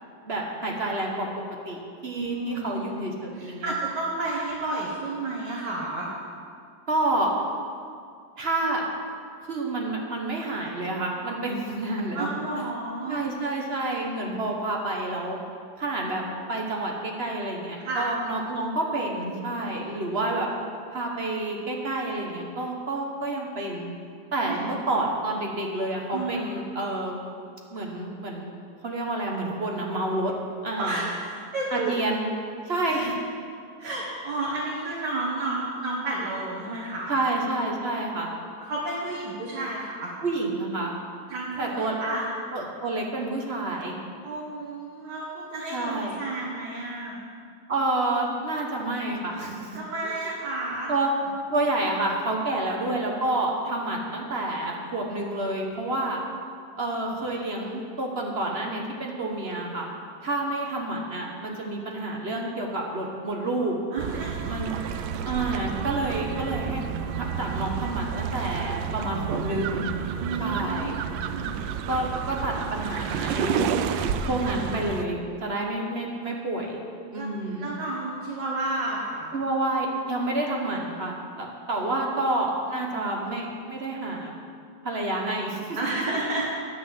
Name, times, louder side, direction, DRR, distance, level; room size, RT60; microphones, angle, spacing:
voice 1, 0.2-1.3 1.6-3.7 6.9-7.3 8.4-8.8 9.4-12.3 13.1-15.4 15.8-16.2 16.5-20.5 20.9-24.0 24.3-27.1 27.7-28.5 28.8-30.3 30.6-31.0 31.7-32.2 32.7-33.1 34.6-34.7 37.1-38.3 40.2-40.9 41.6-42.0 42.5-43.9 45.7-46.1 47.7-49.8 50.0-50.1 50.9-51.1 51.5-56.2 56.8-59.9 60.2-63.7 64.5-64.8 65.2-66.9 67.1-69.8 70.4-70.9 71.9-73.7 74.2-76.8 77.1-77.7 79.3-84.3 84.8-85.7 85.9-86.0, right 2 dB, 40° right, 0 dB, 1.1 m, -29 dB
voice 2, 2.1-2.9 3.3-6.1 12.1-13.2 17.8-18.1 24.4-24.6 26.1-26.5 30.8-31.9 32.9-33.1 33.8-37.2 38.6-40.1 41.3-42.2 44.2-47.2 49.7-50.9 63.9-65.2 70.1-71.6 77.1-77.3 77.6-79.3 85.8-86.5, right 2 dB, 60° right, -6 dB, 2.0 m, -31 dB
sound 1, 64.0-75.0, right 7 dB, 75° right, 1.2 m, -30 dB
10.0 x 6.3 x 7.6 m, 2.3 s
omnidirectional pair, 2.1 m